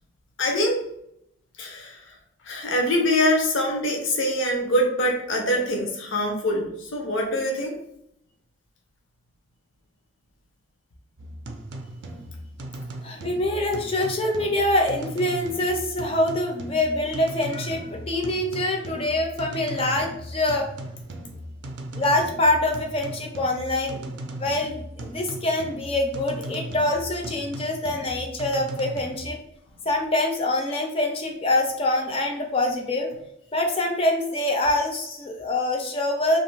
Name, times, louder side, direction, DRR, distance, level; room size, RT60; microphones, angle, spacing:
voice 1, 0.4-0.8 1.6-2.2 2.4-7.8, left 1 dB, 75° left, 1 dB, 0.6 m, -24 dB
sound 1, 11.2-29.3, right 1 dB, 60° right, 0.4 m, -38 dB
voice 2, 13.0-20.7 21.9-29.4 29.9-33.1 33.5-36.4, left 1 dB, 30° left, 2 dB, 0.4 m, -25 dB
2.6 x 2.4 x 3.1 m, 0.75 s
head